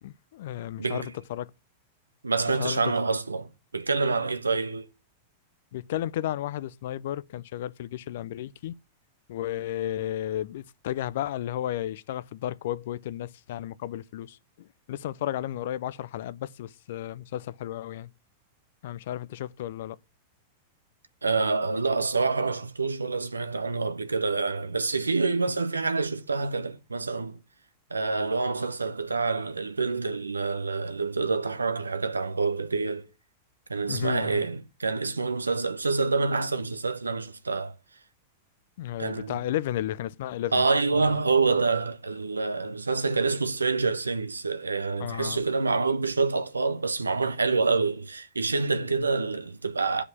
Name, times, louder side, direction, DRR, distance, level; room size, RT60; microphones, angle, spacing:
voice 1, 0.0-1.5 2.6-2.8 5.7-8.7 9.3-18.1 18.8-20.0 33.9-34.5 38.8-40.6 40.9-41.2 45.0-45.4, left 12 dB, 60° left, 0.5 m, -33 dB
voice 2, 0.8-1.1 2.2-4.9 21.2-27.4 27.9-33.1 33.7-37.7 39.0-39.4 40.5-50.0, right 4 dB, 85° right, 0.8 m, -27 dB
9.4 x 5.0 x 7.0 m
figure-of-eight pair, 95°, 0 cm